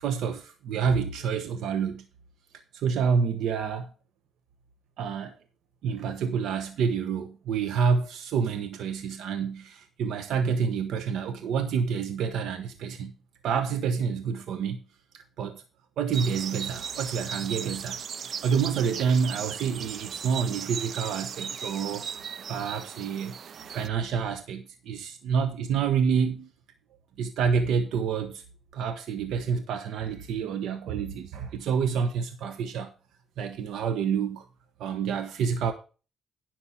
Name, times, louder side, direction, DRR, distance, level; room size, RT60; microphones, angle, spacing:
voice 1, 0.0-2.0 2.7-3.9 5.0-5.3 5.8-13.1 13.4-14.8 15.4-15.6 16.0-18.0 18.4-23.4 23.7-26.5 27.2-28.4 28.7-32.9 33.4-34.4 34.8-35.7, right 6 dB, 80° right, 1.1 m, -28 dB
sound 1, 16.1-23.9, right 7 dB, 60° right, 0.6 m, -37 dB
10.5 x 6.3 x 5.6 m
cardioid pair, 90°, 0 cm